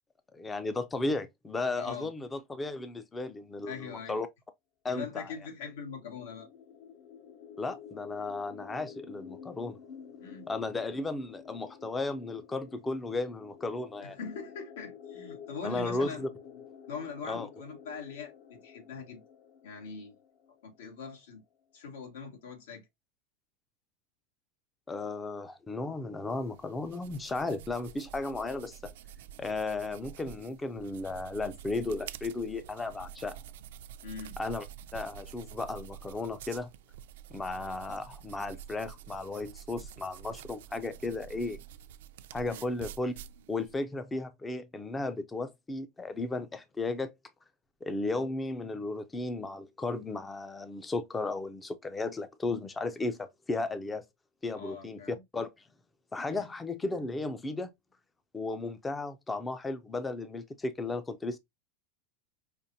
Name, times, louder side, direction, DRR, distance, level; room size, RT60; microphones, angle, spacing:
voice 1, 0.3-4.3 4.8-5.3 7.6-9.8 10.5-14.2 15.6-16.3 17.3-17.5 24.9-28.9 29.4-33.4 34.4-34.6 34.9-36.7 37.3-41.6 42.3-43.1 43.5-47.1 47.8-54.0 54.4-55.7 56.1-57.7 58.3-61.4, left 3 dB, 10° left, 0.4 m, -35 dB
voice 2, 1.8-2.1 3.7-4.2 4.9-6.5 10.2-10.5 14.0-16.3 16.5-19.2 19.6-20.2 20.6-21.4 21.7-22.9 34.0-34.4 42.5-42.7 54.5-55.2 56.3-56.5, left 5 dB, 90° left, 1.9 m, -42 dB
sound 1, 5.5-21.1, left 7 dB, 50° left, 0.7 m, -50 dB
sound 2, 26.3-43.8, right 10 dB, 75° right, 0.4 m, -48 dB
5.1 x 2.5 x 2.7 m
supercardioid pair, 155°, 0 cm